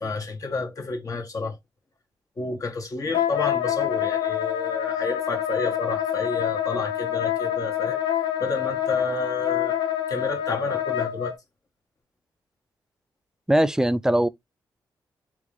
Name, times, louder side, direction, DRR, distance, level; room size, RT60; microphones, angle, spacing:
voice 1, 0.0-1.6 2.4-8.0 8.4-9.8 10.1-11.4, left 3 dB, 45° left, 1.2 m, -30 dB
Wind instrument woodwind instrument, 3.1-11.3, left 10 dB, 80° left, 0.9 m, -26 dB
voice 2, 13.5-14.3, right 1 dB, 5° right, 0.3 m, -20 dB
3.7 x 2.5 x 3.0 m
cardioid pair, 60°, 8 cm